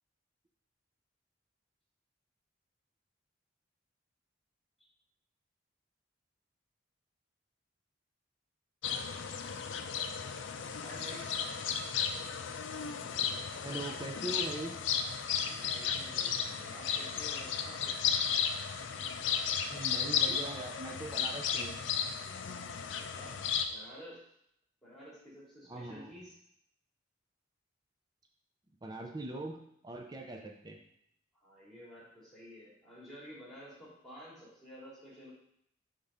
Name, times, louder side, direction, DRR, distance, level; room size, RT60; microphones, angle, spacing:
sound 1, 8.8-23.6, left 7 dB, 75° left, 0.5 m, -34 dB
voice 1, 10.8-11.2 15.5-18.0 22.8-23.3 23.7-24.2 24.8-26.4 31.4-35.3, equal, ahead, -7 dB, 2.6 m, -51 dB
voice 2, 13.6-14.7 19.6-21.8 25.7-26.1 28.8-29.6 29.8-30.8, right 2 dB, 20° right, 2 dB, 0.5 m, -41 dB
5.2 x 3.6 x 5.5 m, 0.72 s
head